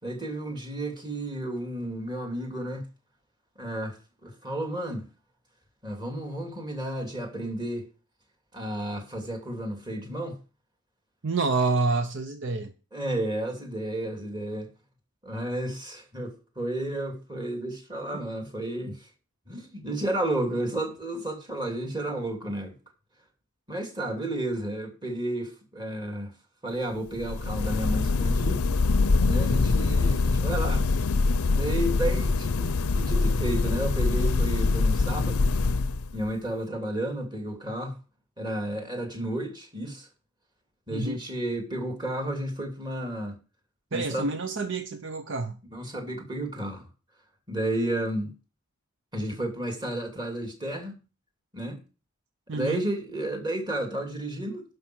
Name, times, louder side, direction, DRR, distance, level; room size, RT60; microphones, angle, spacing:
voice 1, 0.0-2.9 3.6-4.0 4.2-5.1 5.8-7.8 8.5-10.4 12.9-14.7 15.2-19.1 19.5-22.7 23.7-26.3 26.6-28.6 29.2-30.9 31.5-35.5 36.1-38.0 38.4-40.1 40.9-43.4 43.9-44.3 45.7-46.9 47.5-48.3 49.1-51.0 51.5-51.8 52.5-54.6, right 1 dB, 20° right, 2.7 m, -32 dB
voice 2, 11.2-12.7 40.9-41.2 43.9-45.6 52.5-52.8, right 3 dB, 55° right, 0.7 m, -28 dB
sound 1, 27.1-36.3, left 3 dB, 85° left, 0.6 m, -24 dB
11.5 x 5.3 x 6.1 m
head